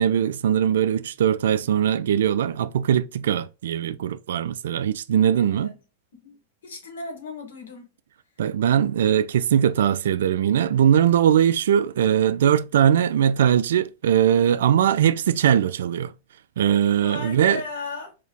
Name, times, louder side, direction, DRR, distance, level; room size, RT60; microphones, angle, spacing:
voice 1, 0.0-5.7 8.4-16.1 16.6-17.6, right 9 dB, 60° right, 0.3 m, -20 dB
voice 2, 5.3-5.8 6.1-6.4 6.6-7.9 17.0-18.1, left 3 dB, 60° left, 1.5 m, -36 dB
4.4 x 2.5 x 3.5 m
figure-of-eight pair, 95°, 0 cm